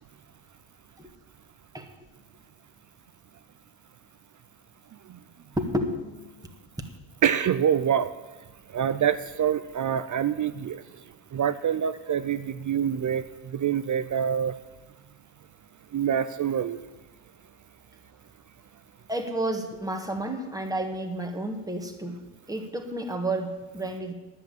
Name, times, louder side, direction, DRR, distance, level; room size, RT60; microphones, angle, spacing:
voice 1, 5.6-6.3 19.1-22.2 22.5-24.1, right 1 dB, 10° right, 3 dB, 1.7 m, -31 dB
voice 2, 7.2-8.1 8.7-10.8 11.3-14.5 15.9-16.8, right 8 dB, 40° right, 12 dB, 0.5 m, -26 dB
10.5 x 8.3 x 8.9 m, 1.2 s
cardioid pair, 90°, 46 cm